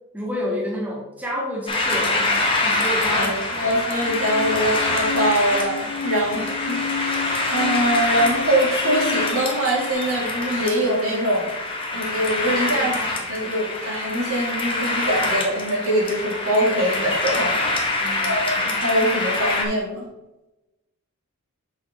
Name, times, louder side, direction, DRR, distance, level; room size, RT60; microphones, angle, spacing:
voice 1, 0.1-3.5 6.3-6.4 12.7-13.1 13.4-13.6 17.0-17.1 18.0-18.4, equal, 5° right, -2 dB, 1.0 m, -30 dB
sound 1, 1.7-19.7, left 2 dB, 25° left, 1.1 m, -25 dB
voice 2, 3.5-7.1 7.5-11.5 11.9-12.9 13.3-17.7 18.2-20.1, right 1 dB, 70° right, -3 dB, 2.6 m, -23 dB
sound 2, 4.0-9.9, left 6 dB, 80° left, 0.9 m, -32 dB
6.9 x 5.8 x 3.6 m, 1.0 s
head